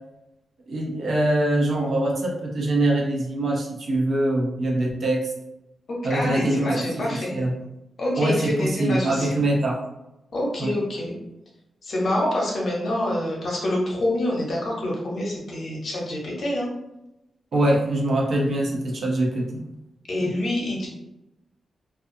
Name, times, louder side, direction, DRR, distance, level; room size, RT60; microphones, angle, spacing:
voice 1, 0.7-5.2 6.0-7.0 7.3-7.5 8.2-9.8 10.6-10.7 17.5-19.6 20.2-20.3, right 1 dB, 55° right, -2 dB, 0.6 m, -23 dB
voice 2, 5.9-7.4 8.0-9.4 10.3-11.1 11.8-16.7 20.1-20.9, left 1 dB, 50° left, -3 dB, 0.8 m, -26 dB
2.3 x 2.2 x 2.6 m, 0.90 s
wide cardioid pair, 165°, 0 cm